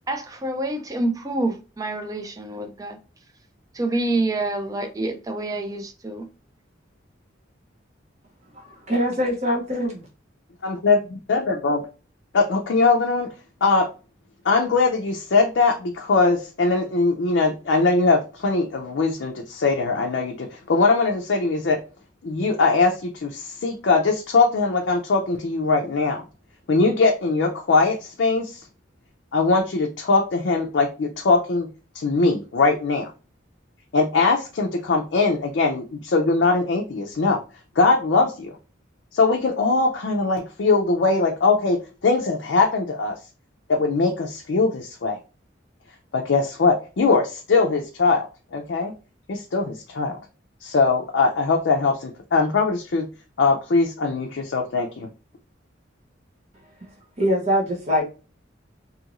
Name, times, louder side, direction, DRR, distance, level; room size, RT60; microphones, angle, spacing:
voice 1, 0.1-3.0 3.7-6.3, right 2 dB, 20° right, 0.4 m, -27 dB
voice 2, 8.5-10.0 56.8-56.9 57.2-58.0, equal, 35° right, 0.8 m, -23 dB
voice 3, 10.6-11.8 12.3-13.3 13.6-13.9 14.4-21.8 22.2-26.2 26.7-28.6 29.3-31.7 31.9-33.1 33.9-37.4 37.8-38.5 39.1-43.1 43.7-45.2 46.1-48.3 48.5-48.9 49.3-50.2 50.6-53.1 53.4-55.1, left 3 dB, 65° left, 0.4 m, -21 dB
2.7 x 2.5 x 2.9 m
head